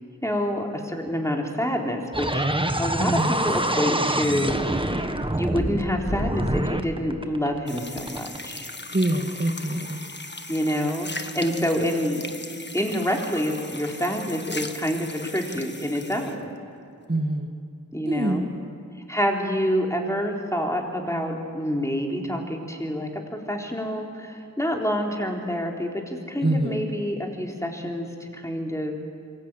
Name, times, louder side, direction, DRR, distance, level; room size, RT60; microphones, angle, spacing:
voice 1, 0.2-2.5 2.8-4.9 5.3-8.7 10.5-12.3 12.7-16.5 17.9-18.5 19.1-29.0, equal, 10° left, 1 dB, 3.9 m, -27 dB
sound 1, 2.1-8.5, right 1 dB, 15° right, 1.6 m, -26 dB
voice 2, 3.0-3.4 8.9-10.0 17.1-17.5 18.1-18.5 26.4-26.8, right 1 dB, 30° right, 2 dB, 2.2 m, -25 dB
sound 2, 7.7-16.4, left 2 dB, 35° left, 1.6 m, -38 dB
26.5 x 24.0 x 9.2 m, 2.3 s
wide cardioid pair, 65°, 31 cm